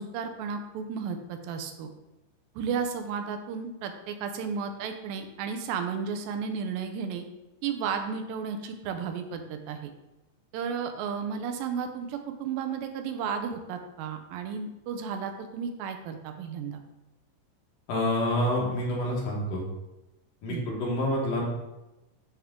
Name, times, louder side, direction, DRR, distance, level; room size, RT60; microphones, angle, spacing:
voice 1, 0.0-1.9 2.6-7.3 7.6-9.9 10.5-16.8 20.5-20.6, right 6 dB, 85° right, 6 dB, 2.4 m, -33 dB
voice 2, 17.9-19.6 20.4-21.5, left 1 dB, 70° left, -3 dB, 3.0 m, -27 dB
9.9 x 3.6 x 3.7 m, 1.0 s
omnidirectional pair, 4.0 m